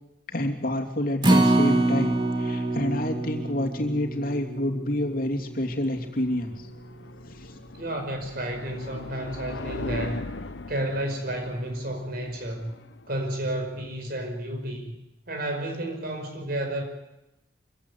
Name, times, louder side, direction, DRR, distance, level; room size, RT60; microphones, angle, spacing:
voice 1, 0.3-6.7 7.2-7.5, left 1 dB, 50° left, 1 dB, 2.9 m, -28 dB
Acoustic guitar, 1.2-7.5 7.9-8.0 8.4-8.5, right 2 dB, 25° right, 2.1 m, -26 dB
sound 1, 5.3-14.3, left 3 dB, 80° left, 1.0 m, -40 dB
voice 2, 7.8-10.3 10.7-12.7 13.1-15.0 15.3-16.8, right 1 dB, 60° right, 5 dB, 5.2 m, -31 dB
25.5 x 16.5 x 8.6 m, 0.90 s
head